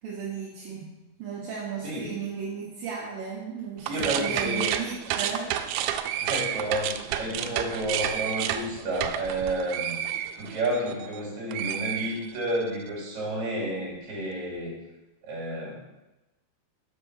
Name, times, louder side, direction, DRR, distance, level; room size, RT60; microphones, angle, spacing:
voice 1, 0.0-0.9 1.2-5.5, right 6 dB, 70° right, -6 dB, 2.3 m, -35 dB
voice 2, 3.8-4.7 6.2-10.0 10.3-14.8 15.2-15.8, right 1 dB, 45° right, -4 dB, 3.2 m, -31 dB
sound 1, 3.8-11.2 11.5-12.7, right 10 dB, 90° right, 2.5 m, -31 dB
7.4 x 5.3 x 6.5 m, 1.0 s
omnidirectional pair, 5.6 m